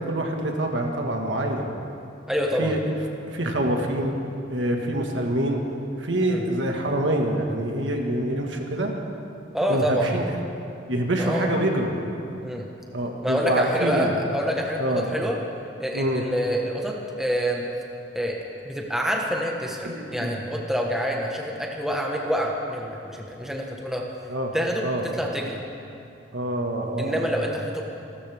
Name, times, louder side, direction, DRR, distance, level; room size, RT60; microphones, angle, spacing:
voice 1, 0.0-1.7 2.6-2.8 3.3-4.2 4.5-5.6 6.0-8.9 9.7-10.3 10.9-11.9 12.9-14.2 14.8-15.1 15.9-16.2 19.8-20.4 24.3-24.5 24.8-25.2 26.3-27.6, right 1 dB, 70° right, 1 dB, 1.8 m, -26 dB
voice 2, 2.3-2.7 6.3-6.4 9.5-10.2 11.2-11.4 12.4-12.6 13.2-15.4 15.8-17.6 18.1-24.0 24.5-24.9 25.2-25.6 27.0-27.8, equal, ahead, -1 dB, 1.4 m, -27 dB
28.5 x 13.0 x 3.6 m, 2.6 s
head